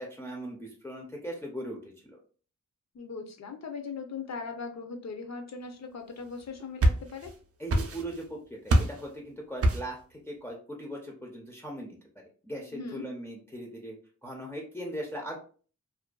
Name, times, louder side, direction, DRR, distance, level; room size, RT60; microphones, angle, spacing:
voice 1, 0.0-1.8 2.0-2.2 7.6-11.9 12.4-14.0 14.2-15.4, right 1 dB, 5° left, -2 dB, 0.4 m, -39 dB
voice 2, 2.9-7.3 12.7-13.1, left 4 dB, 60° left, 5 dB, 0.6 m, -39 dB
sound 1, 6.4-7.4 7.7-8.3 8.7-9.1 9.6-10.0, right 1 dB, 50° right, 0.4 m, -25 dB
2.5 x 2.2 x 2.2 m, 0.40 s
wide cardioid pair, 105°, 31 cm